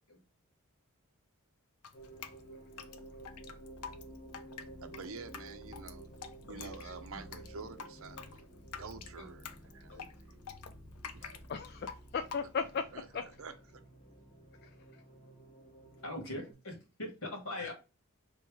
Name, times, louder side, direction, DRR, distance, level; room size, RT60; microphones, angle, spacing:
Drip, 1.8-12.8, left 6 dB, 80° left, 0.6 m, -48 dB
sound 1, 1.9-16.5, right 1 dB, 25° left, 0.9 m, -52 dB
voice 1, 4.8-6.1 6.4-10.6 11.1-11.5 12.9-13.8, right 4 dB, 65° right, 0.6 m, -49 dB
voice 2, 6.5-7.3 9.2-9.3 9.9-10.0 16.0-17.7, left 1 dB, 65° left, 1.9 m, -42 dB
voice 3, 11.5-12.8 13.1-13.2 14.6-14.7 17.6-17.7, left 5 dB, 45° left, 0.3 m, -36 dB
3.4 x 3.0 x 4.7 m
head